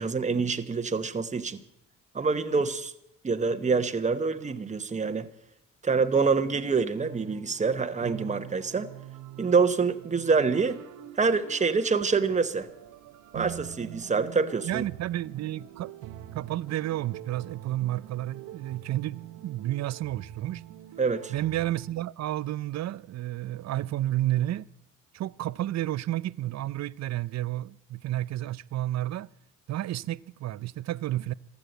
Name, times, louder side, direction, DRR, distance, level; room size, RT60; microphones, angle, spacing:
voice 1, 0.0-1.6 2.1-2.9 3.2-5.3 5.8-8.9 9.4-10.8 11.2-12.7 13.3-14.8 21.0-21.3, right 4 dB, 25° right, 1.1 m, -26 dB
sound 1, 7.0-21.9, right 12 dB, 90° right, 1.0 m, -44 dB
voice 2, 14.6-15.9 16.3-20.6 21.3-24.7 25.1-29.3 29.7-31.3, right 14 dB, 60° right, 0.5 m, -31 dB
15.5 x 12.0 x 7.9 m
cardioid pair, 90°, 30 cm